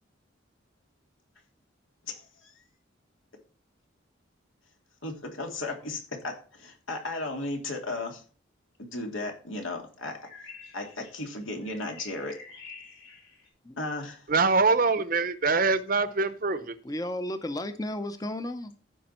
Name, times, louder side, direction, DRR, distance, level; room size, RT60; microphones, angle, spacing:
voice 1, 2.0-2.5 5.0-8.2 8.9-10.1 10.7-12.3 13.8-14.2, left 2 dB, 90° left, 2.8 m, -35 dB
sound 1, 10.2-13.5, left 4 dB, 60° left, 4.6 m, -49 dB
voice 2, 14.3-16.7, right 4 dB, 45° right, 0.7 m, -24 dB
voice 3, 16.5-18.7, left 1 dB, 20° left, 0.6 m, -34 dB
14.5 x 5.2 x 4.4 m
head